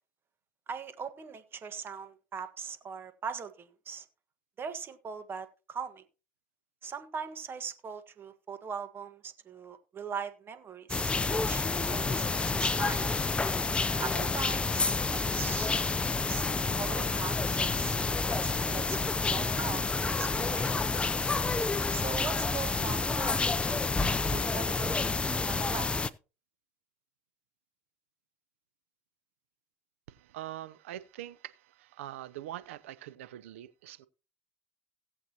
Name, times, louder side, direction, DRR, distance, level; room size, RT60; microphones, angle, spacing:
voice 1, 0.7-4.0 4.6-6.0 6.8-13.1 14.0-15.7 16.1-18.0 18.3-20.7 21.9-23.9 24.3-25.9, right 6 dB, 35° right, 1.5 m, -41 dB
sound 1, 10.9-26.1, left 3 dB, 15° left, 0.6 m, -29 dB
voice 2, 30.1-34.1, right 13 dB, 85° right, 0.7 m, -43 dB
17.5 x 7.8 x 2.9 m
supercardioid pair, 100°, 7 cm